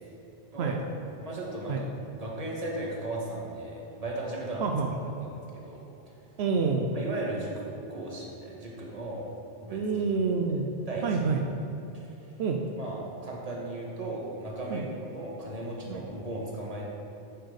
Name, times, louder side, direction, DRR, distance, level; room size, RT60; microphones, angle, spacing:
voice 1, 1.2-1.9 2.2-4.7 5.5-5.8 6.9-7.6 7.9-9.3 9.6-9.8 10.9-11.1 11.9-12.1 12.8-16.9, right 2 dB, 35° right, -3 dB, 1.5 m, -36 dB
voice 2, 4.6-4.9 6.4-6.9 9.7-10.7 11.0-11.4 12.4-12.6 14.7-14.8 15.9-16.0, right 5 dB, 80° right, 2 dB, 0.9 m, -27 dB
10.0 x 4.5 x 4.9 m, 3.0 s
omnidirectional pair, 1.1 m